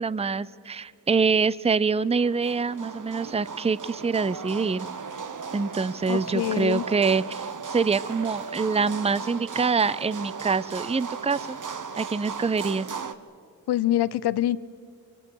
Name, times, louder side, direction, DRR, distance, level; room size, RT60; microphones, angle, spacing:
voice 1, 0.0-4.9 5.5-11.6 12.0-12.9, right 5 dB, 15° right, 19 dB, 0.5 m, -25 dB
sound 1, 2.1-13.2, right 5 dB, 50° right, 1.1 m, -36 dB
voice 2, 6.1-6.9 13.7-14.6, left 13 dB, 85° left, 17 dB, 0.6 m, -25 dB
30.0 x 24.5 x 4.9 m, 2.2 s
cardioid pair, 45°, 39 cm